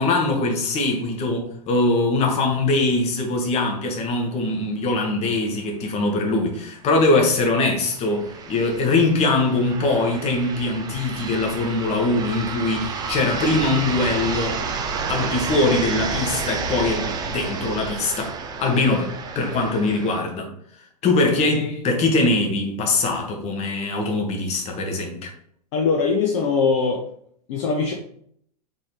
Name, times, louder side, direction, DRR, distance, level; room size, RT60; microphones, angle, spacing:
voice 1, 0.0-14.6 15.1-20.5 21.0-25.3, left 2 dB, 30° left, 1.2 m, -22 dB
sound 1, 6.1-6.2 6.5-6.6 7.4-20.2, right 5 dB, 20° right, 0.5 m, -30 dB
voice 2, 25.7-27.0 27.5-27.9, left 5 dB, 50° left, 0.7 m, -21 dB
3.9 x 3.8 x 3.2 m
figure-of-eight pair, 100°, 21 cm